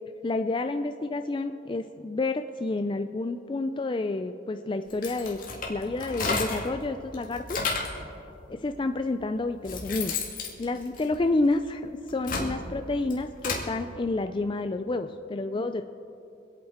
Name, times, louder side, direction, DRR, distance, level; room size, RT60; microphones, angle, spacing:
voice 1, 0.2-5.4 5.7-7.6 8.5-10.2 10.6-15.8, left 2 dB, 25° left, 7 dB, 0.3 m, -29 dB
sound 1, 4.9-6.8 7.1-8.0 8.8-8.9 9.4-11.5 12.0-13.7, left 4 dB, 40° left, 2.2 m, -32 dB
25.5 x 8.6 x 4.3 m, 2.8 s
head